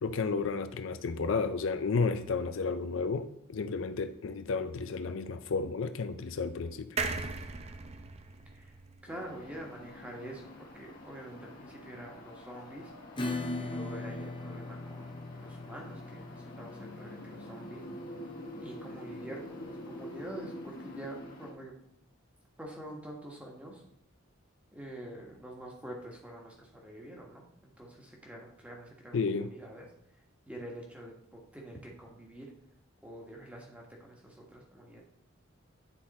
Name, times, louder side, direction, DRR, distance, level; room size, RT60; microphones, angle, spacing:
voice 1, 0.0-7.0 29.1-29.5, left 4 dB, 70° left, 0.4 m, -32 dB
sound 1, 7.0-10.4 10.8-10.9 11.1-11.2, right 4 dB, 30° right, 0.5 m, -39 dB
voice 2, 9.0-12.9 13.6-17.9 18.6-21.7 22.6-23.8 24.7-29.9 30.1-32.5 33.0-35.0, right 1 dB, 5° right, 1.4 m, -46 dB
sound 2, 9.1-21.5, left 1 dB, 40° left, 1.5 m, -47 dB
Acoustic guitar / Strum, 13.2-20.4, left 2 dB, 25° left, 0.7 m, -40 dB
9.8 x 4.2 x 4.2 m
head